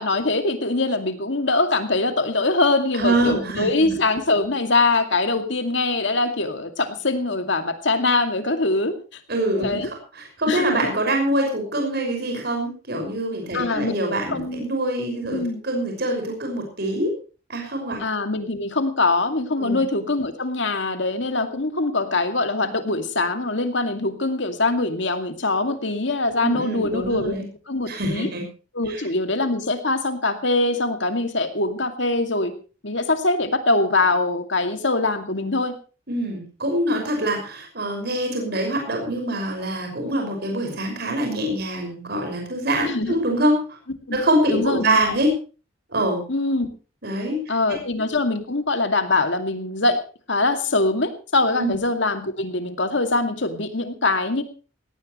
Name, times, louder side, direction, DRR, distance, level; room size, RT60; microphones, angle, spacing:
voice 1, 0.0-9.2 9.6-9.9 10.5-10.9 13.5-13.9 14.3-14.7 15.3-15.6 18.0-27.3 27.7-28.3 28.7-32.5 32.8-35.7 42.8-43.2 44.1-44.2 44.5-45.2 46.3-46.7 47.5-50.0 50.3-54.4, left 2 dB, 65° left, 7 dB, 2.4 m, -23 dB
voice 2, 2.9-4.0 9.3-17.1 17.5-18.0 19.6-19.8 26.4-27.4 27.9-28.4 28.9-29.0 36.1-43.6 44.1-45.3 45.9-46.2 47.0-47.4 47.7-47.8 51.6-51.7, right 1 dB, 55° right, 2 dB, 5.9 m, -24 dB
18.5 x 17.5 x 3.2 m, 0.35 s
head